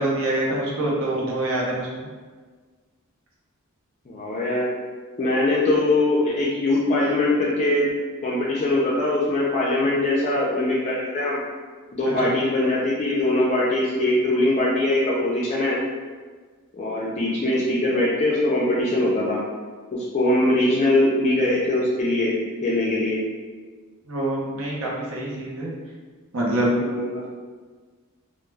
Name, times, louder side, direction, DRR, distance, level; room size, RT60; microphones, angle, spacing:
voice 1, 0.0-2.1 12.2-12.3 24.1-25.7 26.3-26.7, right 1 dB, 65° right, -3 dB, 0.6 m, -25 dB
voice 2, 4.1-4.7 5.2-7.9 8.2-11.4 11.9-15.8 16.7-19.4 19.9-22.3 22.6-23.2 26.8-27.3, left 1 dB, 30° left, -6 dB, 0.3 m, -22 dB
2.2 x 2.0 x 3.2 m, 1.4 s
head